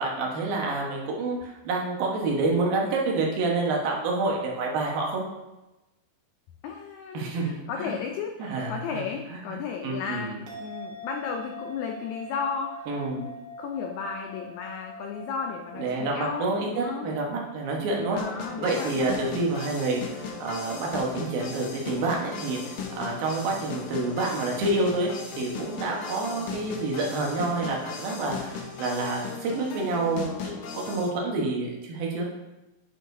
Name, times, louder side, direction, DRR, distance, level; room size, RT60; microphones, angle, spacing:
voice 1, 0.0-5.3 7.1-7.9 8.4-8.8 9.3-9.6 9.8-10.4 12.9-13.2 15.8-18.2 18.6-25.1 25.4-32.3, right 3 dB, 85° right, -1 dB, 3.1 m, -28 dB
voice 2, 6.6-17.2 18.1-19.1, left 6 dB, 90° left, 3 dB, 1.6 m, -34 dB
sound 1, 10.5-27.0, left 1 dB, 50° right, 1.3 m, -46 dB
sound 2, 18.2-31.1, left 5 dB, 75° left, 1.4 m, -37 dB
9.8 x 6.5 x 2.7 m, 1.0 s
omnidirectional pair, 4.0 m